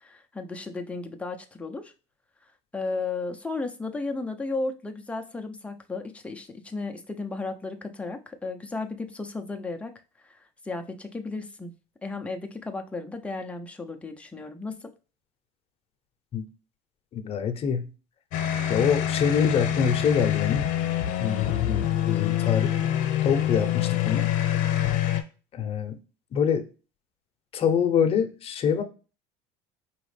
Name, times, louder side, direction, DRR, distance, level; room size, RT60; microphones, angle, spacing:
voice 1, 0.0-1.9 2.7-9.9 10.2-11.7 12.0-14.9, left 3 dB, 10° left, 4 dB, 0.6 m, -34 dB
voice 2, 17.1-17.8 18.7-20.6 21.2-22.7 23.2-24.3 25.5-25.9 26.3-26.6 27.5-28.8, left 7 dB, 40° left, 7 dB, 0.8 m, -25 dB
sound 1, 18.3-25.2, left 11 dB, 65° left, 0.9 m, -26 dB
5.0 x 3.1 x 3.2 m, 0.33 s
cardioid pair, 120°, 15 cm